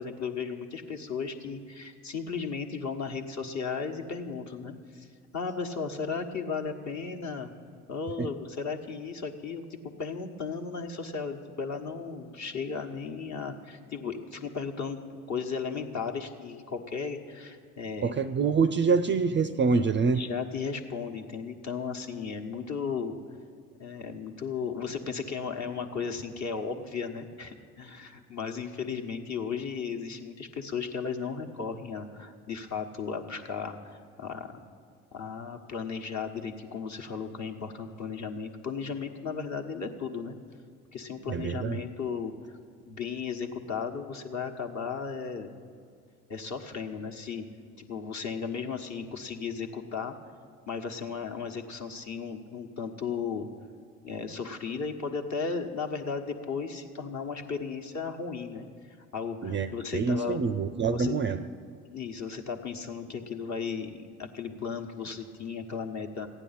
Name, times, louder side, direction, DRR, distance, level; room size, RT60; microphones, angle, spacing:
voice 1, 0.0-5.1 5.3-7.5 7.9-15.0 15.3-18.2 20.0-23.2 23.8-34.5 35.1-40.4 40.9-42.3 42.9-45.5 46.3-47.4 47.8-50.1 50.7-53.5 54.0-58.7 59.1-60.4 60.9-61.1 61.9-66.3, left 5 dB, 40° left, 4 dB, 1.3 m, -35 dB
voice 2, 18.0-20.2 41.3-41.7 59.4-61.4, right 5 dB, 30° right, 11 dB, 0.5 m, -26 dB
15.0 x 9.8 x 5.8 m, 2.3 s
hypercardioid pair, 55°, 42 cm